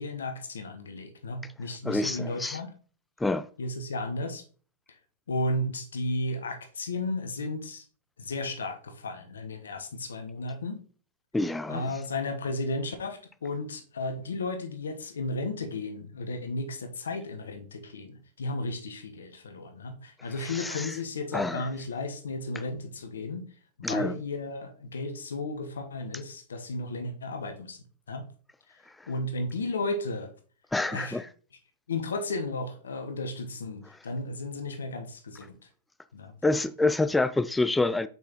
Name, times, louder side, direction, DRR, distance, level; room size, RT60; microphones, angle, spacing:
voice 1, 0.0-2.7 3.6-4.4 5.3-7.8 8.2-10.8 11.7-23.5 23.8-27.8 28.1-28.2 29.1-30.3 30.8-31.2 31.9-35.6 36.1-36.3, left 2 dB, 85° left, 1.1 m, -34 dB
voice 2, 1.8-2.6 3.2-3.5 11.3-11.9 20.4-21.0 21.3-21.7 23.8-24.1 29.0-29.1 30.7-31.3 36.4-38.1, left 2 dB, 5° left, 0.3 m, -27 dB
6.0 x 5.4 x 3.0 m
hypercardioid pair, 110°, 0 cm